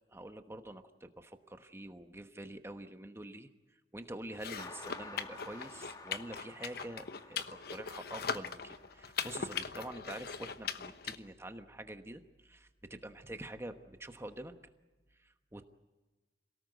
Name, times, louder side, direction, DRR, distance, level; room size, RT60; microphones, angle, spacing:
voice 1, 0.1-3.5 3.9-14.5 15.2-15.7, right 1 dB, 15° right, 7 dB, 1.1 m, -46 dB
sound 1, 4.3-11.2, left 6 dB, 60° left, 1.0 m, -40 dB
sound 2, 4.6-9.4, left 2 dB, 20° left, 1.4 m, -53 dB
27.0 x 18.5 x 8.1 m, 1.3 s
head